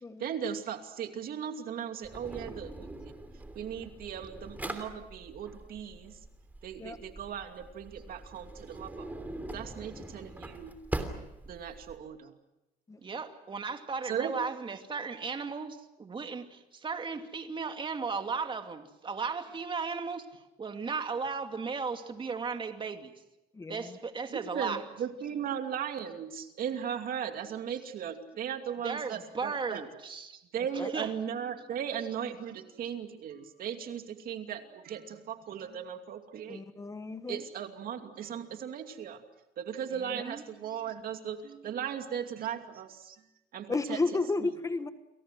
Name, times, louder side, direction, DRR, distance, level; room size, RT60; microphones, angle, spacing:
voice 1, 0.2-3.1 3.5-6.2 6.6-9.1 9.5-10.8 11.5-12.3 14.0-14.4 24.3-29.8 30.5-36.6 37.1-39.2 39.6-43.3 43.5-44.5, right 8 dB, 60° right, 6 dB, 2.6 m, -37 dB
Drawer open or close, 2.0-12.0, right 1 dB, 10° right, 3.1 m, -42 dB
voice 2, 13.0-23.1 23.7-24.8 28.8-30.4 30.9-31.1 40.0-40.4 43.1-43.2, right 5 dB, 30° right, 6 dB, 2.5 m, -36 dB
voice 3, 23.5-23.9 30.8-30.9 36.5-37.4 43.7-44.9, left 3 dB, 20° left, 11 dB, 1.2 m, -32 dB
29.5 x 23.0 x 6.3 m, 0.92 s
cardioid pair, 110°, 17 cm